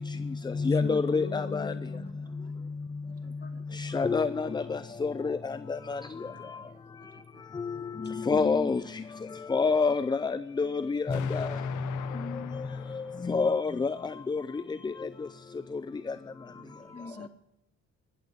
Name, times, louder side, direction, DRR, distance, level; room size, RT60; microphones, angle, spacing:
voice 1, 0.1-2.2 3.2-3.6 8.0-8.7 12.1-12.8 13.2-13.3 16.9-17.3, left 4 dB, 35° left, 1.8 m, -42 dB
voice 2, 0.6-1.7 3.9-4.5 5.0-5.4 8.3-8.8 9.5-10.3 10.6-11.5 13.3-13.9 14.3-14.4, left 4 dB, 15° left, 0.4 m, -26 dB
voice 3, 1.9-2.5 3.4-3.8 6.2-7.9 11.8-12.2 16.3-17.3, right 9 dB, 50° right, 1.0 m, -58 dB
Explosion, 11.1-14.1, left 11 dB, 80° left, 0.9 m, -43 dB
19.0 x 14.5 x 3.6 m
cardioid pair, 90°, 30 cm